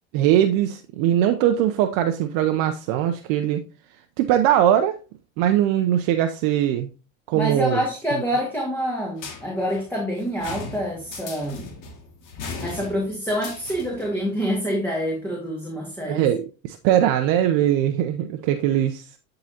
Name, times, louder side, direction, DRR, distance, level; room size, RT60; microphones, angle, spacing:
voice 1, 0.1-3.6 4.2-5.0 5.4-6.9 7.3-7.8 16.1-16.4 16.6-19.0, right 11 dB, 60° right, 0.7 m, -21 dB
voice 2, 7.4-11.7 12.6-16.3, equal, 5° left, 2.0 m, -26 dB
sound 1, 9.2-14.2, left 4 dB, 50° left, 2.1 m, -38 dB
11.5 x 3.9 x 2.8 m
hypercardioid pair, 85°, 40 cm